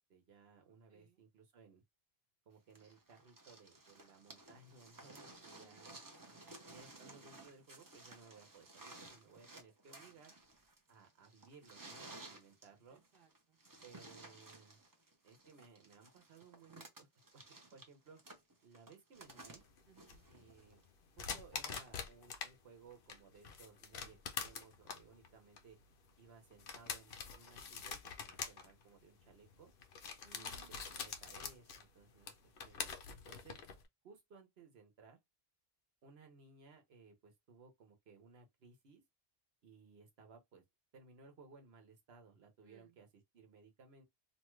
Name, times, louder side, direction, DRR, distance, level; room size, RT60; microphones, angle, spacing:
voice 1, 0.0-1.8 2.5-6.0 6.7-10.3 10.9-13.0 13.8-14.8 15.2-17.1 17.3-18.2 18.6-19.6 20.3-20.8 21.2-25.8 26.2-29.7 30.3-30.5 30.8-33.6 34.0-35.2 36.0-39.0 39.6-40.6 40.9-44.0, right 5 dB, 80° right, 1.2 m, -61 dB
voice 2, 0.9-1.2 5.5-6.1 12.9-13.6 19.8-20.3 30.2-31.1 42.6-42.9, right 5 dB, 60° right, 1.0 m, -67 dB
sound 1, 2.8-20.8 21.9-22.0, right 2 dB, 25° right, 0.5 m, -56 dB
sound 2, 19.2-22.5 22.9-33.9, left 6 dB, 65° left, 0.8 m, -46 dB
2.8 x 2.3 x 3.0 m
omnidirectional pair, 1.0 m